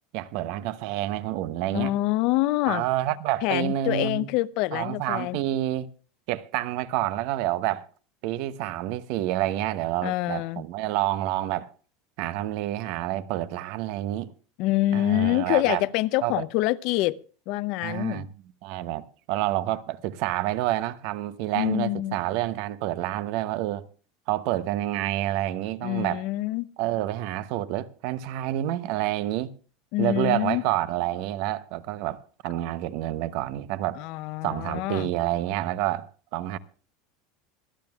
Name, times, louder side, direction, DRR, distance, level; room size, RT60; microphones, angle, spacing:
voice 1, 0.1-1.9 2.7-4.3 4.7-5.9 6.3-7.9 8.2-11.7 12.2-14.3 14.9-15.8 16.2-16.4 17.8-18.3 18.6-23.8 24.3-26.2 26.8-29.5 30.0-34.0 34.4-36.6, right 14 dB, 60° right, 0.7 m, -28 dB
voice 2, 1.7-2.8 3.4-5.4 10.0-10.6 14.6-17.2 17.5-18.3 21.5-22.2 25.8-26.7 29.9-30.6 34.0-35.1, left 17 dB, 55° left, 0.5 m, -26 dB
25.5 x 10.5 x 2.3 m
supercardioid pair, 150°, 0 cm